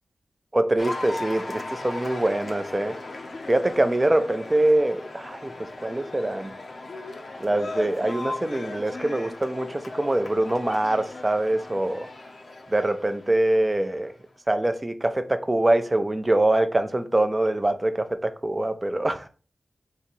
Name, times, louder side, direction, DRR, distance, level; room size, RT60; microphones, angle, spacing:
voice 1, 0.5-3.0 3.5-5.5 5.8-6.5 7.4-12.1 12.7-14.1 14.5-19.3, right 1 dB, 20° right, 0.5 m, -24 dB
Cheering / Applause, 0.8-14.2, left 2 dB, 55° left, 0.7 m, -37 dB
3.9 x 2.9 x 4.4 m
wide cardioid pair, 125°, 0 cm